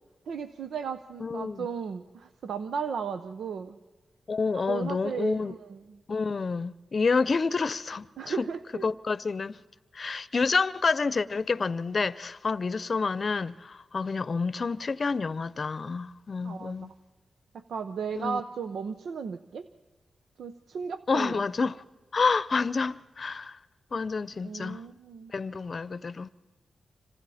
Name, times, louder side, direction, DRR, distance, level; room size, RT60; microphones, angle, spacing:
voice 1, 0.3-3.8 4.6-6.0 8.2-8.9 16.4-17.0 17.5-19.7 20.4-21.4 24.4-25.3, right 6 dB, 85° right, 0.8 m, -35 dB
voice 2, 1.2-1.7 4.3-5.5 6.1-8.4 8.8-9.6 9.9-16.9 18.1-18.4 21.1-21.8 22.1-23.6 23.9-24.8 25.3-26.3, left 4 dB, 50° left, 0.7 m, -28 dB
30.0 x 26.0 x 4.3 m
cardioid pair, 60°, 0 cm